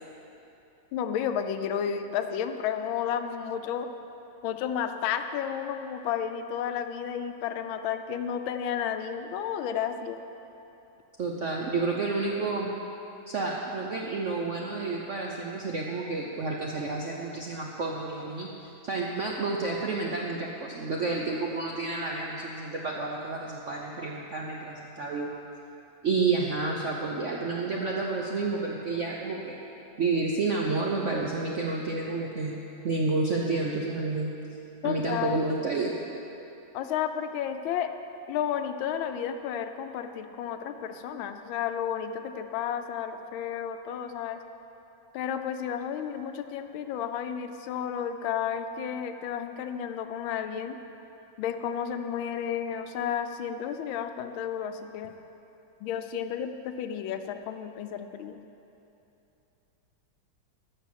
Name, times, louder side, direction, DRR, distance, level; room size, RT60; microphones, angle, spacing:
voice 1, 0.9-3.9 4.4-10.2 34.8-35.4 36.7-37.9 38.3-44.4 45.1-50.8 51.4-55.1 55.8-58.4, left 8 dB, 80° left, 8 dB, 1.4 m, -32 dB
voice 2, 11.2-12.7 13.3-18.5 18.8-25.3 26.0-29.5 30.0-34.3 34.8-35.9, right 3 dB, 65° right, -2 dB, 0.7 m, -30 dB
12.5 x 5.4 x 7.3 m, 2.9 s
omnidirectional pair, 2.2 m